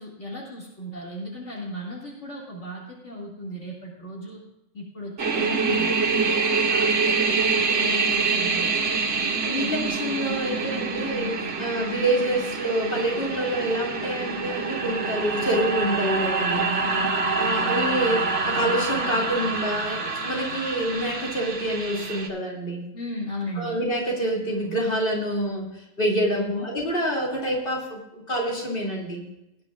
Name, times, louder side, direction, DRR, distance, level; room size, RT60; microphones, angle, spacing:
voice 1, 0.0-4.4 4.7-8.8 16.8-17.1 22.9-23.8 26.3-26.7, left 1 dB, 65° left, -4 dB, 2.7 m, -36 dB
sound 1, 5.2-22.3, right 4 dB, 65° right, 1.6 m, -26 dB
voice 2, 9.2-16.8 17.4-22.9 23.6-29.3, right 1 dB, 45° left, -2 dB, 2.9 m, -27 dB
18.0 x 10.5 x 2.4 m, 0.88 s
omnidirectional pair, 1.3 m